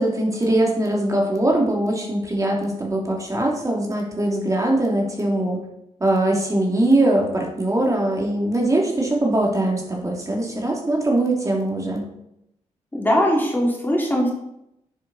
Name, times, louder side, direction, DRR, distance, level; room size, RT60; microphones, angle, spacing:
voice 1, 0.0-5.6 6.0-12.0, right 1 dB, 25° right, -1 dB, 2.9 m, -21 dB
voice 2, 12.9-14.3, equal, 15° left, -2 dB, 3.1 m, -20 dB
9.4 x 7.8 x 4.3 m, 0.81 s
cardioid pair, 70°, 12 cm